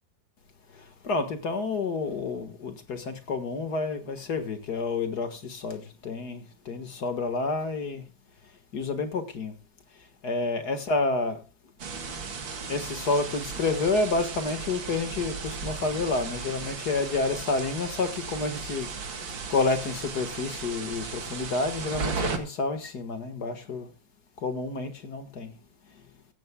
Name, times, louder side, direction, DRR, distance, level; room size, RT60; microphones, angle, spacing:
voice 1, 1.1-5.8 6.1-6.4 6.7-8.0 8.7-9.5 10.2-11.4 12.7-18.9 19.5-22.1 22.4-23.8 24.4-25.5, left 3 dB, 60° left, 2.1 m, -29 dB
sound 1, 11.8-22.4, right 5 dB, 85° right, 2.7 m, -35 dB
16.0 x 15.5 x 2.2 m
omnidirectional pair, 2.0 m